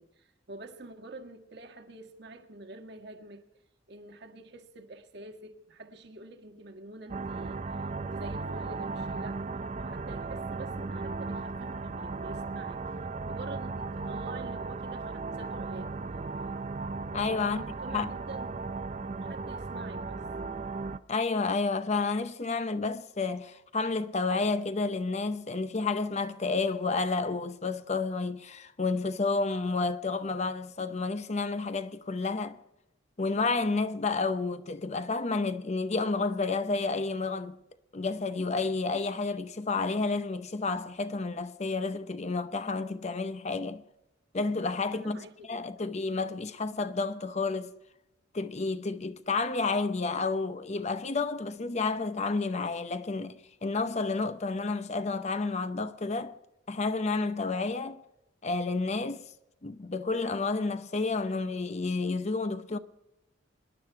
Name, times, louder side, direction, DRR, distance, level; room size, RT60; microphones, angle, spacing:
voice 1, 0.0-3.4 3.9-7.6 8.0-9.4 9.7-12.8 13.2-15.9 17.4-18.6 19.0-20.3 44.9-45.6, right 2 dB, 60° right, 1.6 m, -47 dB
sound 1, 7.1-21.0, right 3 dB, 35° right, 0.5 m, -36 dB
voice 2, 17.1-18.1 21.1-32.6 33.2-37.6 37.9-43.8 44.3-45.2 45.5-47.7 48.3-56.3 56.7-58.0 58.4-59.2 59.6-62.8, left 3 dB, 35° left, 0.7 m, -30 dB
25.5 x 10.5 x 4.6 m
head